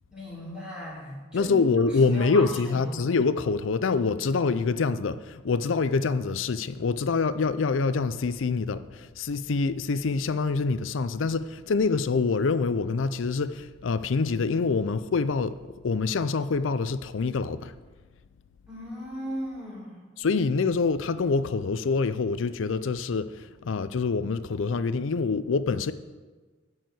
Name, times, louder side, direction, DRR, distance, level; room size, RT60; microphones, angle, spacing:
voice 1, 0.1-1.6 2.1-3.2 18.7-20.0, equal, 5° right, 3.5 m, -37 dB
voice 2, 1.3-15.6 15.8-17.7 20.2-25.9, left 4 dB, 85° left, 0.5 m, -26 dB
10.0 x 4.7 x 7.8 m
head